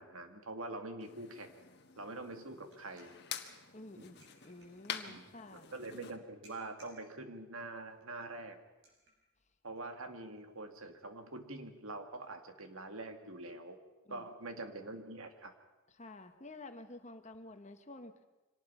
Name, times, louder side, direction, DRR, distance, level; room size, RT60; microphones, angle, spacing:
voice 1, 0.0-1.6 2.0-3.1 4.0-4.1 5.1-5.2 5.5-8.6 9.6-13.8 14.1-15.5, right 2 dB, 80° right, 6 dB, 2.1 m, -45 dB
sound 1, 1.0-6.2, left 8 dB, 50° left, 1.4 m, -47 dB
sound 2, 2.2-12.3, right 2 dB, 60° right, 7.3 m, -70 dB
voice 2, 3.7-5.7 14.0-14.3 15.9-18.1, left 2 dB, 35° left, 7 dB, 1.3 m, -51 dB
25.0 x 19.0 x 5.7 m, 1.1 s
head